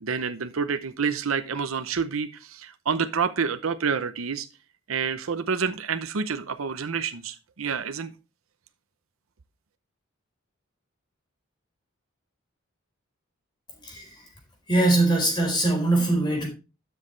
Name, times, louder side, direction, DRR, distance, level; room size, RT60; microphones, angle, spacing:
voice 1, 0.0-4.5 4.9-8.1, right 6 dB, 85° right, 0.7 m, -28 dB
voice 2, 13.8-14.3 14.7-16.5, right 2 dB, 20° left, 4.3 m, -22 dB
12.5 x 6.4 x 3.2 m
head